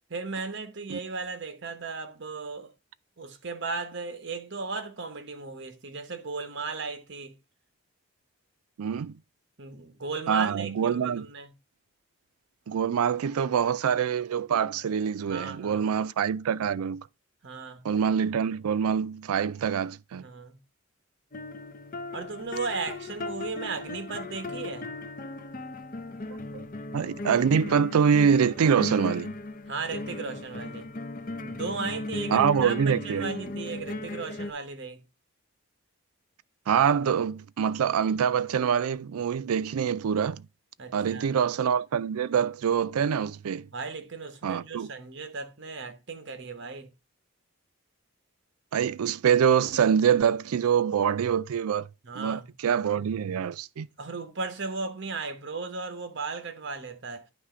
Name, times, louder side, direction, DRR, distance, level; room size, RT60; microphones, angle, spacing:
voice 1, 0.1-2.7 3.2-7.4 9.6-11.5 15.2-15.9 17.4-17.9 20.2-20.6 22.1-24.9 29.7-30.9 31.4-35.0 40.8-41.3 43.7-46.9 52.0-52.5 54.0-57.3, right 4 dB, 55° right, 1.0 m, -36 dB
voice 2, 8.8-9.2 10.3-11.3 12.7-17.1 17.8-20.3 26.3-26.6 26.9-29.3 32.3-33.3 36.7-40.4 40.9-43.7 44.4-44.9 48.7-51.9 52.2-53.9, right 7 dB, 90° right, 0.4 m, -25 dB
sound 1, 21.3-34.5, left 2 dB, 40° left, 0.6 m, -37 dB
9.7 x 3.2 x 4.9 m
head